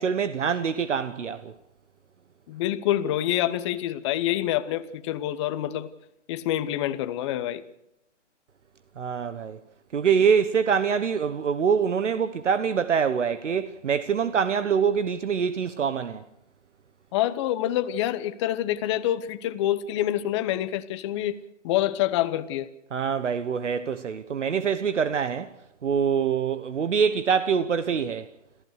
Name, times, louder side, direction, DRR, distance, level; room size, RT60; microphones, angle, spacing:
voice 1, 0.0-1.5 9.0-9.6 9.9-16.2 22.9-25.5 25.8-28.3, right 7 dB, 70° right, 1.2 m, -25 dB
voice 2, 2.5-5.9 6.3-7.6 17.1-21.4 21.6-22.7, left 13 dB, 25° left, 0.9 m, -26 dB
27.5 x 15.0 x 6.5 m
hypercardioid pair, 145°, 37 cm